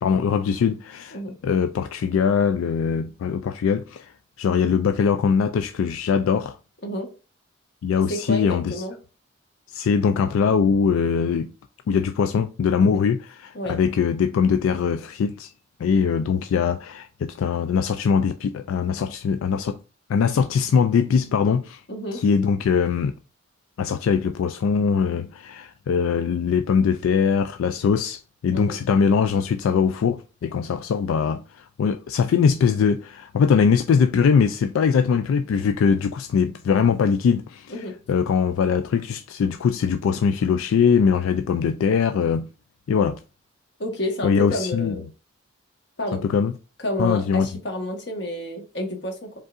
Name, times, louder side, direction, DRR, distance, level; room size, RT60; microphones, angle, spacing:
voice 1, 0.0-1.2 1.4-4.1 4.4-6.6 7.8-8.7 9.7-11.5 11.9-15.5 15.8-19.8 20.1-21.8 22.1-23.1 23.8-37.7 38.1-42.5 42.9-43.2 44.2-44.9 46.1-46.5 47.0-47.5, left 6 dB, 90° left, 0.3 m, -21 dB
voice 2, 8.0-8.9 12.8-13.0 13.5-13.8 21.1-21.4 21.9-22.2 28.5-28.8 37.7-37.9 43.8-45.0 46.0-46.2 46.8-49.3, left 1 dB, 55° left, 1.3 m, -30 dB
5.2 x 3.7 x 2.4 m
head